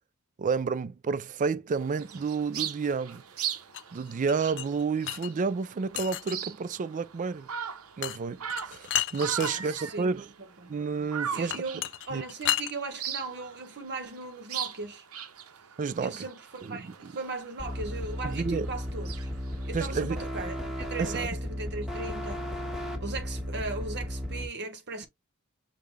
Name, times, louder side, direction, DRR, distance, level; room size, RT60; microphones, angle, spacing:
voice 1, 0.4-3.2 3.9-7.5 8.0-10.3 10.7-11.6 12.1-12.2 15.8-16.2 16.6-17.1 18.2-18.7 19.7-20.2 21.0-21.3, right 5 dB, 35° right, 0.3 m, -30 dB
sound 1, 1.8-20.3, right 8 dB, 70° right, 0.8 m, -40 dB
sound 2, 3.7-5.3 6.0-6.5 8.0-8.2 8.5-9.5 11.5-12.7, left 12 dB, 55° left, 0.4 m, -32 dB
voice 2, 9.6-10.2 10.6-10.8 11.3-15.1 16.0-19.3 19.6-22.5 23.0-25.1, right 3 dB, 50° right, 1.1 m, -38 dB
sound 3, 17.6-24.5, equal, ahead, 1.4 m, -35 dB
6.5 x 2.4 x 3.3 m
head